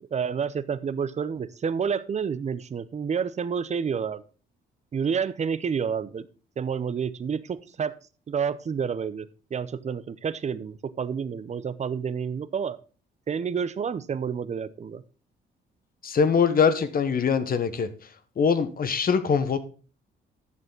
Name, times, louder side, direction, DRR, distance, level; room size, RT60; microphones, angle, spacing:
voice 1, 0.0-4.2 4.9-6.3 6.6-7.9 8.3-12.8 13.3-15.0, right 6 dB, 35° right, 0.6 m, -29 dB
voice 2, 16.0-17.9 18.4-19.6, left 6 dB, 45° left, 1.1 m, -22 dB
11.0 x 6.8 x 3.8 m
cardioid pair, 90°, 20 cm